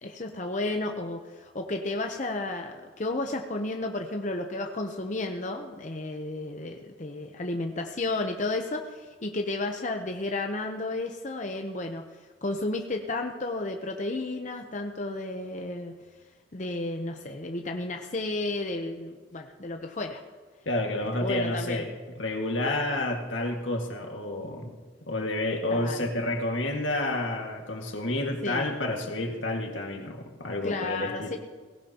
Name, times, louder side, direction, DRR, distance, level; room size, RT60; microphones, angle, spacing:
voice 1, 0.0-12.0 12.4-15.9 16.5-20.2 21.2-21.8 25.6-26.0 28.4-28.7 30.6-31.4, left 2 dB, 40° left, 3 dB, 0.8 m, -32 dB
voice 2, 20.7-21.9 22.2-24.8 25.1-31.3, left 1 dB, 80° left, 2 dB, 1.9 m, -30 dB
18.5 x 16.5 x 2.9 m, 1.5 s
head